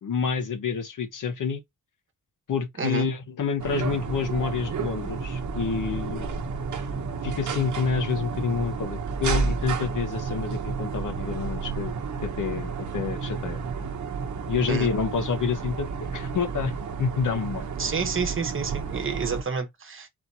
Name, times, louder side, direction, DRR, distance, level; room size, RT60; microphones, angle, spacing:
voice 1, 0.0-1.6 2.5-6.3 7.2-12.0 12.2-13.6 14.5-16.7 17.0-17.6, left 5 dB, 65° left, 1.0 m, -28 dB
sound 1, 3.6-19.4, right 5 dB, 60° right, 0.9 m, -31 dB
voice 2, 17.8-20.1, right 5 dB, 40° right, 1.1 m, -29 dB
4.3 x 2.8 x 4.1 m
wide cardioid pair, 175°, 33 cm